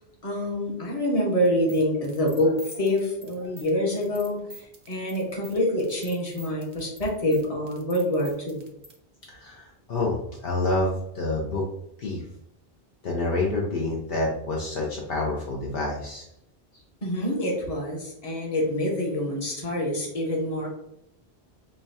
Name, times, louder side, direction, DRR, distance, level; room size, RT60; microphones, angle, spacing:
voice 1, 0.2-4.4 4.9-8.6 17.0-20.7, left 1 dB, 40° left, -2 dB, 1.1 m, -26 dB
sound 1, 1.5-9.0, right 2 dB, 45° right, 0.6 m, -47 dB
voice 2, 9.3-11.6 12.0-12.3 13.0-16.3 16.7-16.8, left 2 dB, 65° left, -2 dB, 0.9 m, -28 dB
5.3 x 2.3 x 2.7 m, 0.78 s
omnidirectional pair, 1.0 m